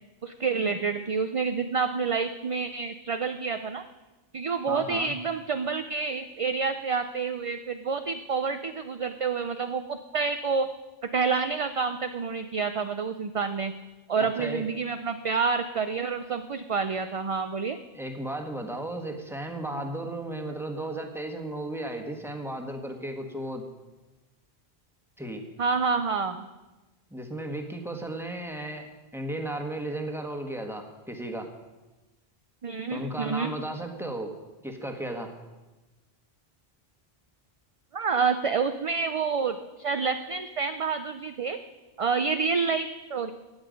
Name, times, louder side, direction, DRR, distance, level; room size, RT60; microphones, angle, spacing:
voice 1, 0.2-3.8 4.3-10.7 11.1-13.7 14.1-17.8 25.6-26.5 32.6-33.5 37.9-41.6 42.0-43.3, right 5 dB, 45° right, 9 dB, 0.5 m, -28 dB
voice 2, 4.7-5.1 14.2-14.6 17.9-23.6 25.2-25.4 27.1-31.5 32.9-34.3 34.6-35.3, right 1 dB, ahead, 3 dB, 1.4 m, -35 dB
16.0 x 9.9 x 5.2 m, 1.1 s
omnidirectional pair, 1.1 m